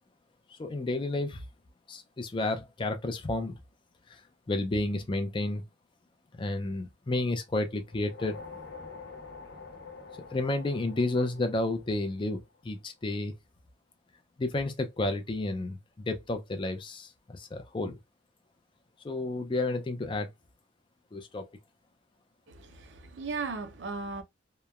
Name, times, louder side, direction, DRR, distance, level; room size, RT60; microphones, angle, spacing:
voice 1, 0.5-1.4 1.9-3.6 4.1-4.2 4.5-5.6 6.3-8.4 10.2-13.3 14.4-18.0 19.0-20.3 21.1-21.5, left 2 dB, 25° left, 0.4 m, -31 dB
sound 1, 7.9-12.4, left 4 dB, 55° left, 0.8 m, -46 dB
voice 2, 22.5-24.2, right 4 dB, 70° right, 0.5 m, -37 dB
2.9 x 2.1 x 2.3 m
head